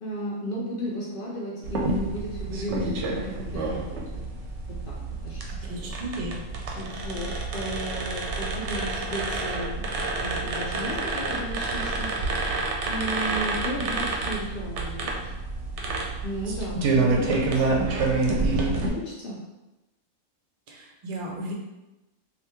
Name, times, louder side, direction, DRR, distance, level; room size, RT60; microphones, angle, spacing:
voice 1, 0.0-4.3 4.7-5.9 6.7-12.1 12.9-15.2 16.2-19.4, equal, 60° left, -3 dB, 0.6 m, -34 dB
sound 1, 1.6-18.9, right 3 dB, 70° right, 0.8 m, -28 dB
voice 2, 5.7-6.4 20.7-21.5, right 1 dB, 50° right, -1 dB, 0.5 m, -34 dB
2.8 x 2.3 x 3.4 m, 1.0 s
omnidirectional pair, 1.3 m